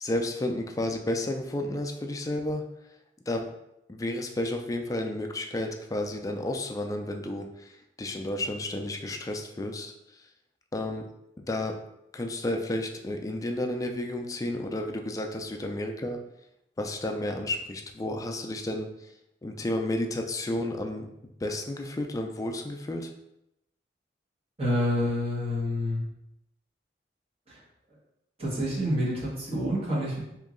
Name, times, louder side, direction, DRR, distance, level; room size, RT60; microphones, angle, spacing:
voice 1, 0.0-2.6 3.3-3.4 3.9-10.3 10.7-11.0 11.5-11.8 12.1-16.2 16.8-19.1 19.4-21.1 21.4-23.1, left 1 dB, 20° left, 3 dB, 0.3 m, -32 dB
voice 2, 24.6-26.0 27.5-27.6 28.4-30.2, equal, 35° right, -6 dB, 1.2 m, -28 dB
3.0 x 2.7 x 3.7 m, 0.85 s
head